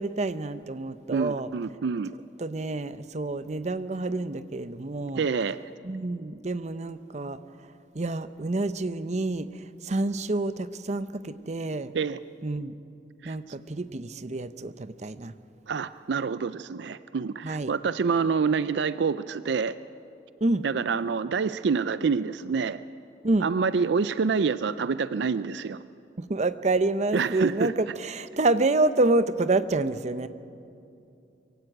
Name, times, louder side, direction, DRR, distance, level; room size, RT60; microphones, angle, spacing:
voice 1, 0.0-1.5 2.4-5.2 5.8-7.4 7.9-9.5 9.8-11.9 12.4-12.7 13.2-15.3 17.4-17.7 20.4-20.6 23.2-23.5 26.2-30.3, right 2 dB, 40° right, 13 dB, 0.7 m, -28 dB
voice 2, 1.1-2.1 5.1-5.6 11.9-12.2 13.2-13.4 15.7-19.8 20.6-22.8 23.4-25.8 27.1-27.7, right 5 dB, 75° right, 14 dB, 0.4 m, -27 dB
23.5 x 16.0 x 8.8 m, 2.6 s
head